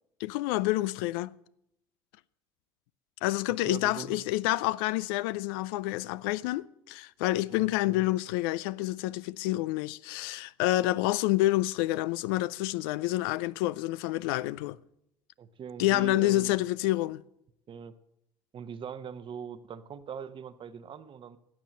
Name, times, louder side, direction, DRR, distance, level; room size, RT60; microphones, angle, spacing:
voice 1, 0.2-1.3 3.2-14.8 15.8-17.2, left 17 dB, 85° left, 0.4 m, -28 dB
voice 2, 3.5-4.2 7.5-8.1 15.4-16.6 17.7-18.0 18.5-21.4, right 7 dB, 45° right, 0.9 m, -41 dB
12.5 x 7.5 x 7.7 m
supercardioid pair, 75°, 12 cm